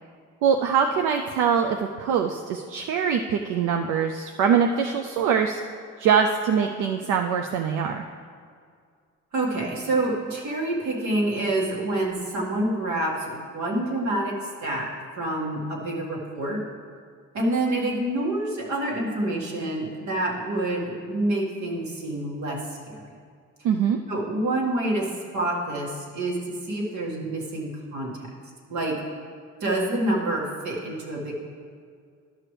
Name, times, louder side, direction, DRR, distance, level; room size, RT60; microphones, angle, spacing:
voice 1, 0.4-5.6 6.0-8.0 23.6-24.0, right 7 dB, 90° right, 4 dB, 0.5 m, -23 dB
voice 2, 9.3-14.3 14.6-14.9 15.2-16.6 17.3-23.0 24.1-25.1 25.3-28.3 28.7-29.0 29.6-31.3, right 1 dB, 70° right, -3 dB, 1.9 m, -27 dB
12.0 x 6.0 x 3.2 m, 2.1 s
cardioid pair, 90°, 30 cm